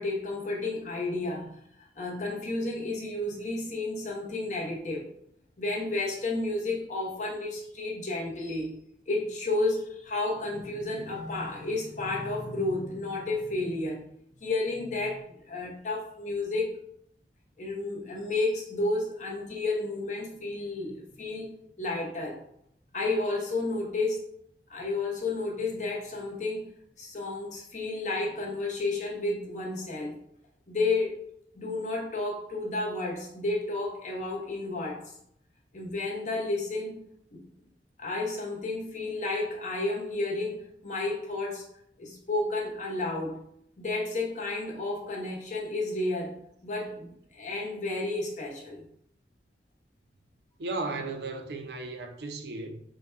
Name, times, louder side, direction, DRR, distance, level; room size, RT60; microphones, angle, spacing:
voice 1, 0.0-5.1 5.6-8.8 9.1-14.0 14.4-16.7 17.6-21.5 21.8-22.4 22.9-24.3 24.7-26.7 27.0-30.2 30.7-31.2 31.5-35.1 35.7-37.0 37.3-37.4 38.0-41.6 42.0-43.4 43.8-46.4 46.6-48.9, left 2 dB, 45° left, 0.9 m, -31 dB
voice 2, 50.6-52.8, right 3 dB, 70° right, 0.6 m, -35 dB
3.8 x 2.3 x 4.4 m
head